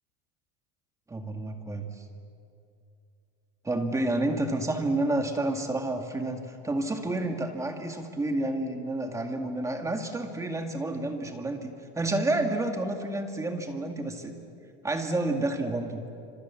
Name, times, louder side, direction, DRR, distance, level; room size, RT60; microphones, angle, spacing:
voice 1, 1.1-2.0 3.6-14.3 14.8-16.0, right 2 dB, 10° right, 4 dB, 2.1 m, -30 dB
28.5 x 26.5 x 7.2 m, 2.5 s
cardioid pair, 155°, 31 cm